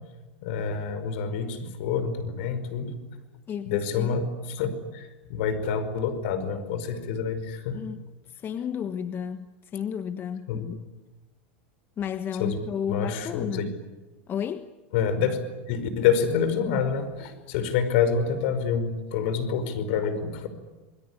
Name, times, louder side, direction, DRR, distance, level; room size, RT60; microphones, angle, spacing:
voice 1, 0.4-3.0 3.7-7.8 10.5-10.6 12.4-12.6 12.9-13.7 14.9-15.4 15.7-20.5, left 6 dB, 65° left, 11 dB, 5.2 m, -27 dB
voice 2, 3.5-4.2 7.7-8.0 8.3-10.8 12.0-13.7 14.3-14.7, left 8 dB, 35° left, 10 dB, 1.3 m, -32 dB
27.5 x 21.5 x 9.9 m, 1.2 s
hypercardioid pair, 95°, 7 cm